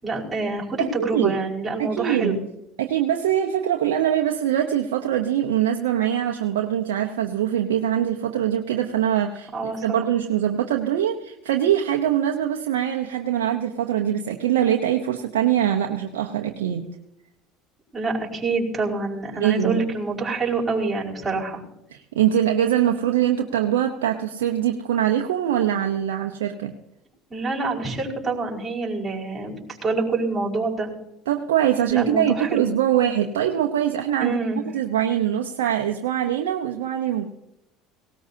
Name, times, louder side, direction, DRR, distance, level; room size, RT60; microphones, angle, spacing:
voice 1, 0.0-2.4 9.5-10.0 17.9-21.6 27.3-30.9 31.9-32.6 34.2-34.6, right 3 dB, 20° right, -4 dB, 5.2 m, -26 dB
voice 2, 0.8-1.4 1.8-2.4 2.8-16.9 19.4-19.8 21.9-26.7 31.3-34.4 34.7-37.3, right 10 dB, 85° right, 3 dB, 0.9 m, -23 dB
19.0 x 18.0 x 2.8 m, 0.87 s
hypercardioid pair, 80°, 0 cm